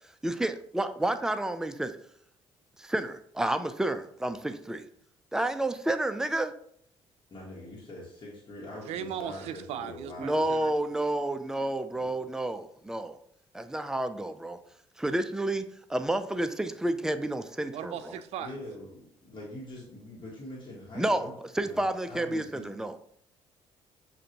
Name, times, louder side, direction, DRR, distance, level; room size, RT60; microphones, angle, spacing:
voice 1, 0.2-2.0 2.8-4.8 5.3-6.5 10.2-13.2 13.5-14.6 15.0-18.1 20.9-23.0, right 1 dB, 5° right, 10 dB, 0.3 m, -30 dB
voice 2, 7.3-10.5 11.9-12.3 18.4-21.3 21.6-22.8, left 1 dB, 45° left, -6 dB, 1.3 m, -44 dB
voice 3, 8.9-10.7 17.7-18.5, right 9 dB, 75° right, 11 dB, 0.4 m, -37 dB
6.4 x 2.6 x 2.8 m, 0.66 s
cardioid pair, 100°, 11 cm